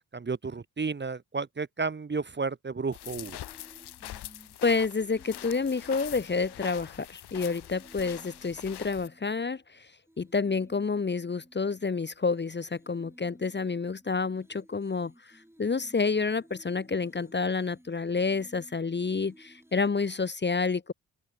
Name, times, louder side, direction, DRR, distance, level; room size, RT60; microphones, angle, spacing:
voice 1, 0.1-3.4, right 4 dB, 25° right, 0.9 m, -32 dB
sound 1, 2.9-9.1, left 13 dB, 70° left, 0.9 m, -44 dB
sound 2, 3.0-9.7 10.1-20.2, right 1 dB, 5° right, 7.1 m, -57 dB
voice 2, 4.6-9.9 10.2-20.9, left 4 dB, 25° left, 0.8 m, -29 dB
open air
supercardioid pair, 45°, 40 cm